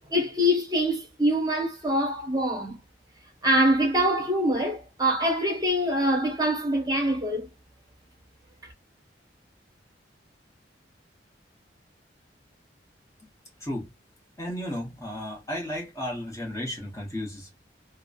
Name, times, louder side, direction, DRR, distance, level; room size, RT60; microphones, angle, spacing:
voice 1, 0.1-2.8 3.4-7.5, equal, 20° right, 0.9 m, -24 dB
voice 2, 13.6-13.9 14.4-17.5, equal, 15° left, 1.0 m, -34 dB
3.1 x 2.0 x 2.4 m
head